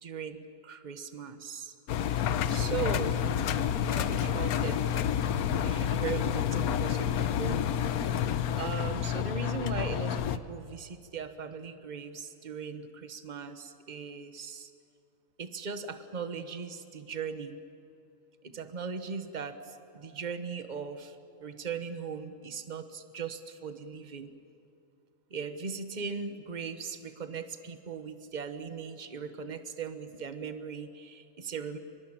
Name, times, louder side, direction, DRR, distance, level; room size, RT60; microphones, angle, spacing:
voice 1, 0.0-1.7 2.5-3.2 3.8-4.8 5.6-7.7 8.5-14.7 15.4-17.6 18.4-24.3 25.3-31.8, right 6 dB, 35° right, 9 dB, 1.2 m, -39 dB
Engine, 1.9-10.4, left 9 dB, 80° left, 1.3 m, -29 dB
23.5 x 22.0 x 8.9 m, 2.6 s
omnidirectional pair, 1.5 m